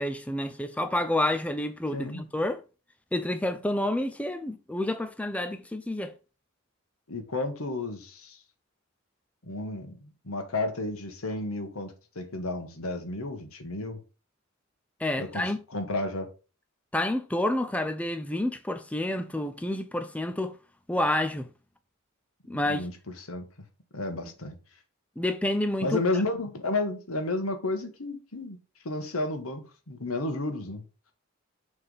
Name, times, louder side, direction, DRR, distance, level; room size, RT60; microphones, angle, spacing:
voice 1, 0.0-2.6 3.1-6.1 15.0-15.6 16.9-20.6 20.9-21.5 22.5-22.9 25.2-26.0, left 1 dB, 5° left, 0.5 m, -29 dB
voice 2, 1.9-2.2 7.1-8.4 9.4-14.0 15.2-16.3 22.5-23.4 23.9-24.6 25.8-28.6 28.8-30.8, left 2 dB, 90° left, 1.4 m, -32 dB
6.5 x 3.5 x 5.5 m
head